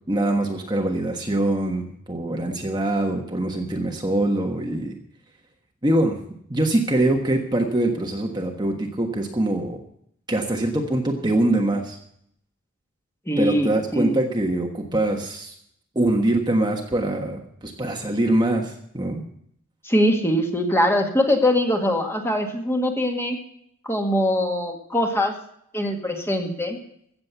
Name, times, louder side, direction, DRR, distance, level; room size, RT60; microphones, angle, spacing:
voice 1, 0.1-5.0 5.8-6.2 6.5-9.8 10.3-12.0 13.4-15.5 15.9-19.2, right 1 dB, 20° right, 2 dB, 1.3 m, -23 dB
voice 2, 13.3-14.1 19.8-23.4 23.8-25.3 25.7-26.8, left 1 dB, 10° left, 2 dB, 1.9 m, -22 dB
15.5 x 7.6 x 8.2 m, 0.70 s
head